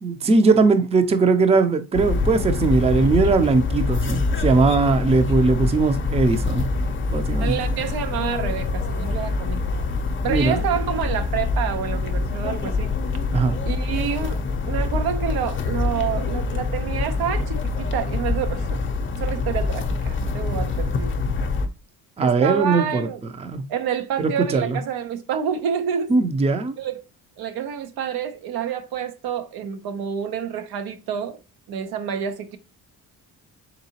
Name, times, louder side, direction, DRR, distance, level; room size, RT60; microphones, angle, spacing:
voice 1, 0.0-6.7 7.1-7.5 10.3-10.6 13.3-13.6 22.2-23.1 23.4-23.6 24.2-24.8 26.1-26.7, right 4 dB, 20° right, 0.4 m, -19 dB
sound 1, 1.9-21.7, left 3 dB, 35° left, 0.6 m, -25 dB
voice 2, 7.4-9.6 10.2-12.9 13.6-18.8 19.2-21.1 22.2-23.2 23.7-26.1 26.8-27.0 27.4-31.4 31.7-32.6, right 8 dB, 85° right, 0.7 m, -28 dB
3.9 x 3.7 x 2.8 m
cardioid pair, 135°, 36 cm